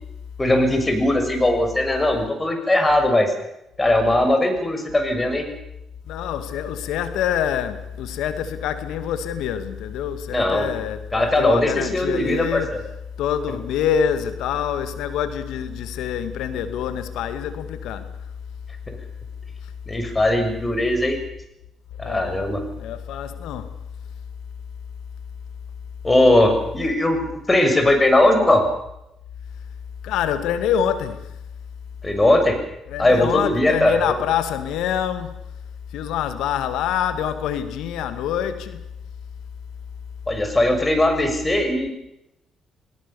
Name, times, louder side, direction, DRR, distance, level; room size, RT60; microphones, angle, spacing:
voice 1, 0.4-3.3 3.8-5.5 10.3-10.7 11.1-12.8 18.9-19.0 19.9-21.2 22.0-22.6 26.0-27.2 27.5-28.7 32.0-32.6 33.0-34.2 40.3-41.9, left 1 dB, 20° left, 6.7 m, -19 dB
voice 2, 6.1-12.8 13.2-18.1 22.0-22.4 22.8-23.7 30.0-31.3 32.9-35.4 35.9-38.8, left 9 dB, 80° left, 2.1 m, -26 dB
27.0 x 18.0 x 7.1 m
supercardioid pair, 55°, 0 cm